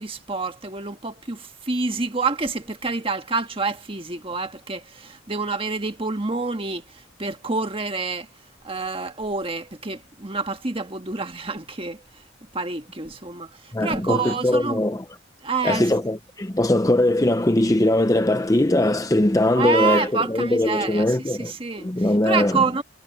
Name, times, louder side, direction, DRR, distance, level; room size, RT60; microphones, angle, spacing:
voice 1, 0.0-8.3 8.6-12.2 12.5-14.8 15.4-15.9 19.6-22.8, right 4 dB, 25° right, 1.5 m, -28 dB
voice 2, 13.7-15.0 15.6-21.5 21.8-22.6, left 1 dB, 15° left, 0.6 m, -21 dB
head